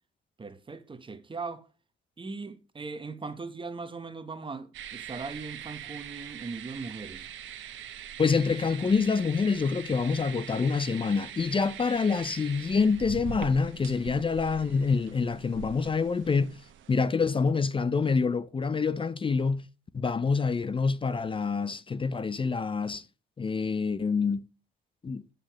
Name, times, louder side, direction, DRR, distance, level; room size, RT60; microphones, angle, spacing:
voice 1, 0.4-1.7 2.2-7.3, right 4 dB, 25° right, 1.0 m, -39 dB
sound 1, 4.7-17.0, right 9 dB, 75° right, 1.0 m, -43 dB
voice 2, 8.2-16.6 16.9-19.7 19.9-23.0 23.4-24.4 25.0-25.2, left 5 dB, 25° left, 0.5 m, -26 dB
7.6 x 6.6 x 3.0 m
cardioid pair, 90°, 20 cm